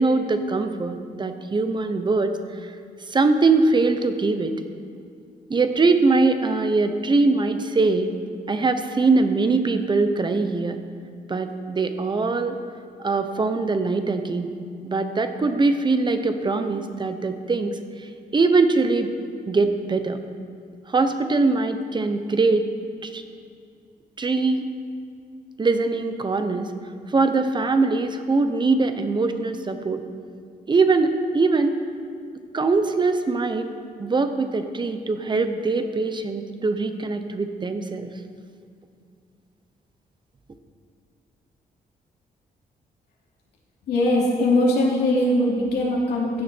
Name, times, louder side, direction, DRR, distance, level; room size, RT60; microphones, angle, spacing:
voice 1, 0.0-2.3 2.6-2.7 3.1-4.5 5.5-8.1 8.5-10.8 11.3-12.6 13.0-14.5 14.8-19.1 19.5-20.2 20.9-22.7 23.0-23.2 24.2-24.6 25.6-26.7 27.1-30.0 30.7-31.8 32.5-33.7 34.0-38.1, right 3 dB, 30° right, 8 dB, 0.9 m, -22 dB
voice 2, 43.9-46.4, left 1 dB, 85° left, -3 dB, 2.9 m, -21 dB
15.5 x 9.8 x 4.5 m, 2.3 s
cardioid pair, 115°, 16 cm